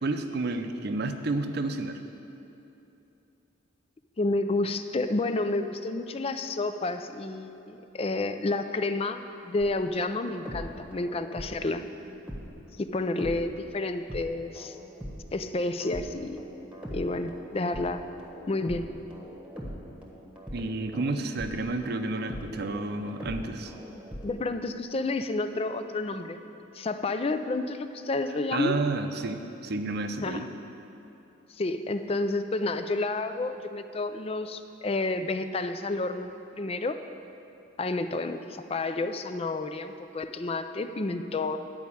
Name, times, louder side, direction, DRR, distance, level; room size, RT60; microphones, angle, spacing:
voice 1, 0.0-2.0 20.5-23.7 28.5-30.5, right 2 dB, 50° right, 7 dB, 0.6 m, -30 dB
voice 2, 4.2-11.9 12.8-14.8 15.3-16.4 16.9-18.0 18.5-18.9 24.2-28.7 30.2-30.4 31.5-37.0 37.8-41.6, left 2 dB, 30° left, 9 dB, 0.4 m, -30 dB
sound 1, 9.6-13.8 14.1-24.8, equal, 5° right, 1.2 m, -42 dB
11.0 x 5.2 x 8.4 m, 2.9 s
head